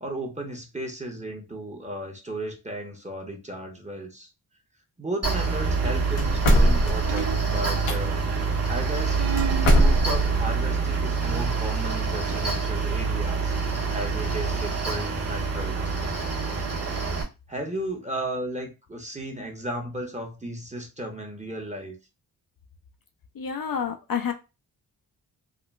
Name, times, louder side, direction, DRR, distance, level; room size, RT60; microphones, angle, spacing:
voice 1, 0.0-4.3 5.0-8.2 8.7-9.2 9.7-13.6 13.9-15.8 17.5-22.0, right 1 dB, 15° right, 2 dB, 1.1 m, -34 dB
Mechanical fan, 5.2-17.2, right 4 dB, 35° right, 1.3 m, -26 dB
sound 1, 5.9-6.3 7.1-8.0 9.2-10.0, right 10 dB, 75° right, 0.6 m, -33 dB
sound 2, 6.2-8.0 9.4-10.4, equal, 85° left, 0.9 m, -21 dB
voice 2, 23.3-24.3, left 7 dB, 55° left, 3 dB, 0.6 m, -29 dB
3.7 x 2.3 x 2.3 m, 0.28 s
supercardioid pair, 40°, 42 cm